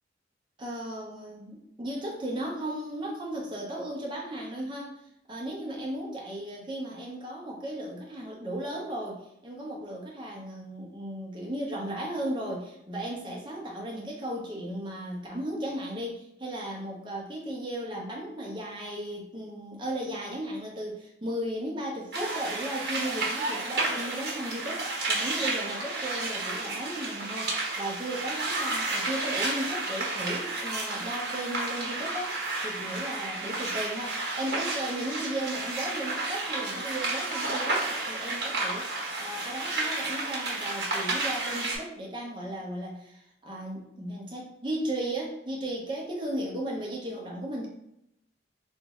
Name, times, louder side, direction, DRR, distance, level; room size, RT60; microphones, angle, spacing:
voice 1, 0.6-4.9 5.3-38.9 39.2-47.7, right 1 dB, 25° right, -2 dB, 0.7 m, -35 dB
sound 1, 22.1-41.8, right 2 dB, 65° right, 1.0 m, -31 dB
3.0 x 2.6 x 3.5 m, 0.76 s
head